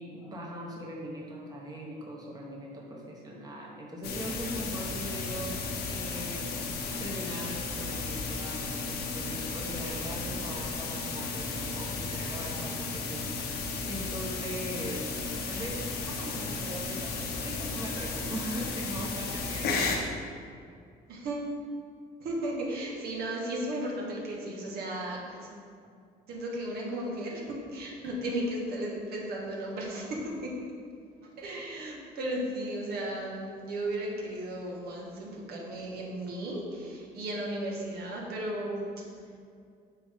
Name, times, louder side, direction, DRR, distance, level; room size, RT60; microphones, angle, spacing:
voice 1, 0.0-5.6 5.9-15.1 15.5-20.0, equal, 20° right, -2 dB, 1.3 m, -40 dB
sound 1, 4.0-20.0, left 4 dB, 70° left, 1.2 m, -34 dB
voice 2, 21.1-21.5 22.2-25.5 26.3-30.5 31.4-38.9, right 1 dB, 70° right, -2 dB, 1.8 m, -35 dB
9.0 x 6.0 x 3.7 m, 2.3 s
cardioid pair, 110°, 17 cm